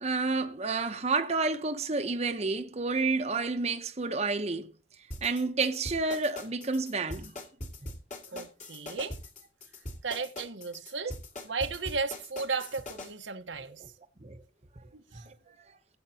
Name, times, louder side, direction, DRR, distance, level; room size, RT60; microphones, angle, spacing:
voice 1, 0.0-4.7 5.2-7.3 13.8-13.9 14.2-14.4 15.1-15.3, right 3 dB, 35° right, 0.9 m, -30 dB
sound 1, 5.1-13.1, left 1 dB, 40° left, 2.4 m, -41 dB
voice 2, 8.3-9.2 10.0-11.2 11.4-13.8 14.9-15.3, right 4 dB, 90° right, 1.2 m, -35 dB
20.0 x 8.1 x 2.9 m
head